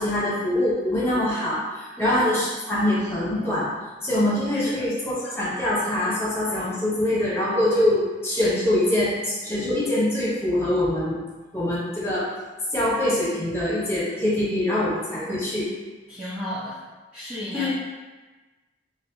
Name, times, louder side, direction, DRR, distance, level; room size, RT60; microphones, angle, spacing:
voice 1, 0.0-3.7 4.0-11.2 11.5-12.3 12.7-15.7 17.5-17.7, left 1 dB, 15° left, -8 dB, 0.9 m, -24 dB
voice 2, 16.1-16.8 17.1-17.7, left 1 dB, 5° right, -11 dB, 0.4 m, -33 dB
4.0 x 2.2 x 2.6 m, 1.2 s
head